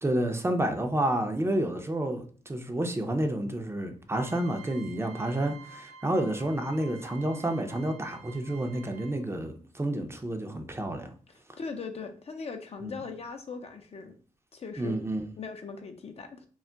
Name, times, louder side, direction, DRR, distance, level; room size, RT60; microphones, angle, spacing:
voice 1, 0.0-11.1 12.8-13.0 14.8-15.2, right 1 dB, 20° right, 0.5 m, -30 dB
sound 1, 4.1-9.4, right 5 dB, 60° right, 0.8 m, -50 dB
voice 2, 11.6-14.2 14.5-15.0 15.4-16.4, left 4 dB, 50° left, 0.5 m, -39 dB
2.3 x 2.1 x 3.7 m
supercardioid pair, 50°, 13 cm